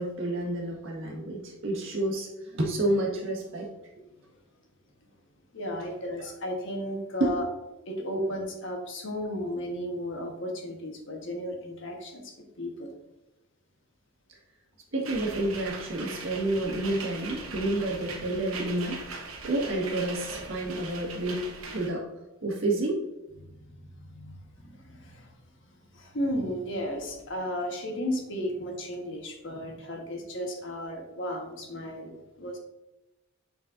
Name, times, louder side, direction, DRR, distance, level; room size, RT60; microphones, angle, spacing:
voice 1, 0.0-3.7 7.2-7.3 8.2-8.3 14.9-19.0 19.4-21.4 21.7-22.0 22.4-23.0, right 1 dB, 60° right, -1 dB, 1.6 m, -29 dB
voice 2, 5.5-7.5 7.9-12.2 12.6-12.9 23.4-23.5 24.0-25.2 26.0-32.1 32.4-32.6, equal, 60° left, 1 dB, 1.3 m, -34 dB
sound 1, 15.0-21.9, right 4 dB, 80° right, 1.1 m, -40 dB
8.8 x 4.3 x 2.6 m, 0.96 s
head